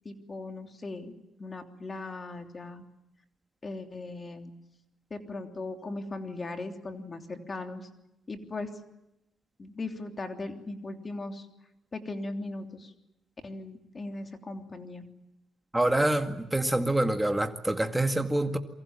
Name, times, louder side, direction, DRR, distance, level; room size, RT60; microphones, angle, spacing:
voice 1, 0.0-1.1 1.4-2.8 3.6-4.5 5.1-7.9 8.3-8.7 9.6-11.5 11.9-12.9 13.4-15.1, left 2 dB, 30° left, 6 dB, 3.2 m, -38 dB
voice 2, 15.7-18.6, right 1 dB, 10° right, 6 dB, 2.1 m, -26 dB
28.5 x 23.5 x 7.4 m, 0.90 s
cardioid pair, 90°, 0 cm